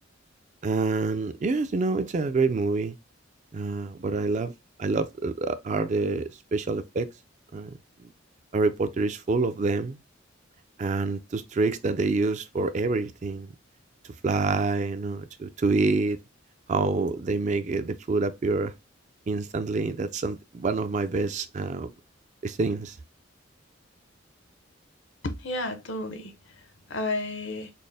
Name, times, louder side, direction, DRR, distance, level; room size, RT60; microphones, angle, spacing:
voice 1, 0.6-3.0 3.5-4.5 4.8-7.1 7.5-8.1 8.5-10.0 10.8-13.5 14.2-16.2 16.7-18.7 19.3-21.9 22.4-23.0, right 3 dB, 35° right, 0.4 m, -27 dB
voice 2, 25.2-26.6 26.9-27.7, left 2 dB, 65° left, 0.7 m, -32 dB
4.2 x 2.0 x 3.4 m
head